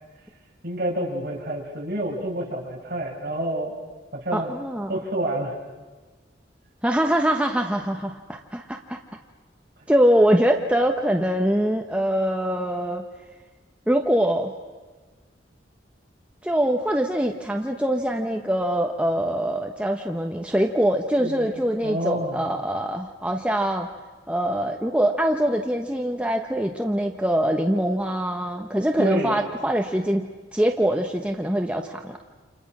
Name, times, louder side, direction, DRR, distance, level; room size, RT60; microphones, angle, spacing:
voice 1, 0.6-3.7 4.1-4.6 4.9-5.5 21.2-21.5 21.8-22.4 29.0-29.4, right 1 dB, 55° right, -2 dB, 6.7 m, -28 dB
voice 2, 4.3-4.9 6.8-9.0 9.9-13.0 13.9-14.5 16.4-23.9 24.3-30.3 30.5-32.2, right 1 dB, 5° right, 2 dB, 1.1 m, -23 dB
30.0 x 28.0 x 6.2 m, 1.3 s
head